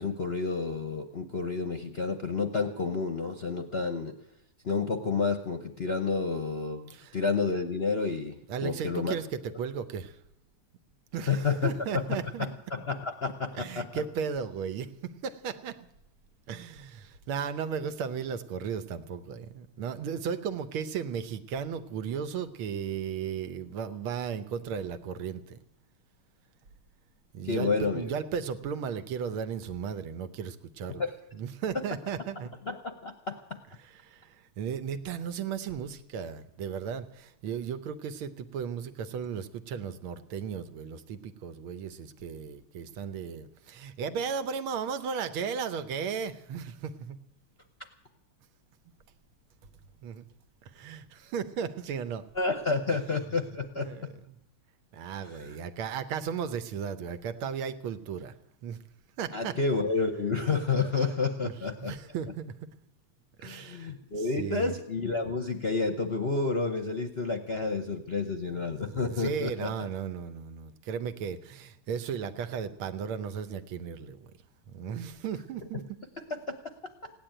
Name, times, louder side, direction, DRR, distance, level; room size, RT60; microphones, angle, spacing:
voice 1, 0.0-4.1 4.6-8.3 8.6-9.1 11.3-11.7 12.7-13.9 27.4-28.1 30.9-31.1 32.7-33.6 52.4-53.9 55.2-55.6 59.3-61.9 63.4-69.7 76.3-76.7, left 4 dB, 45° left, 7 dB, 0.8 m, -30 dB
voice 2, 8.5-10.2 11.1-12.5 13.5-15.8 16.5-25.6 27.3-31.0 31.3-32.5 33.8-47.2 50.0-50.3 50.6-52.2 53.8-54.4 54.9-58.3 58.6-58.8 59.2-59.6 61.4-62.5 63.4-64.8 68.8-74.3 74.7-75.8, right 7 dB, 80° right, 11 dB, 1.8 m, -35 dB
16.5 x 10.0 x 8.9 m, 0.84 s
omnidirectional pair, 2.3 m